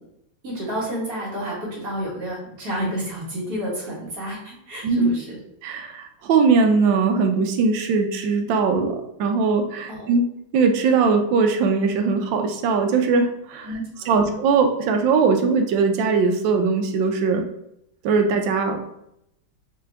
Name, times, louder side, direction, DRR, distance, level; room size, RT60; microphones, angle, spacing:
voice 1, 0.4-5.4 10.0-10.1 13.6-14.3, equal, 45° right, -5 dB, 1.9 m, -30 dB
voice 2, 4.8-5.1 5.6-10.2 10.5-13.7 14.1-17.4 18.0-19.0, right 4 dB, 75° right, 5 dB, 1.2 m, -20 dB
4.5 x 2.9 x 3.5 m, 0.78 s
omnidirectional pair, 2.3 m